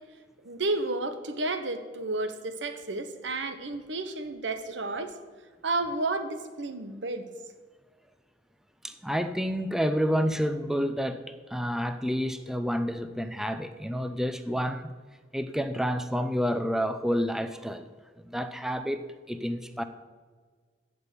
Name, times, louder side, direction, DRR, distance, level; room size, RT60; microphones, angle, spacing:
voice 1, 0.4-5.1 5.6-7.3, right 2 dB, 90° right, 9 dB, 1.1 m, -31 dB
voice 2, 8.8-14.9 15.3-17.9 18.2-19.8, equal, 5° right, 9 dB, 0.5 m, -29 dB
15.0 x 5.3 x 8.3 m, 1.5 s
head